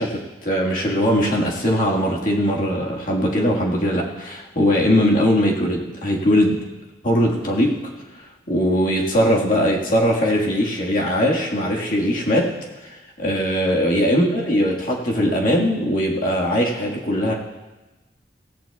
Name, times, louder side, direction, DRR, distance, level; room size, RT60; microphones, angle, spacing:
voice 1, 0.0-6.6 7.0-7.8 8.5-12.5 12.8-17.3, equal, 50° left, -2 dB, 1.8 m, -20 dB
17.0 x 15.0 x 2.4 m, 1.1 s
head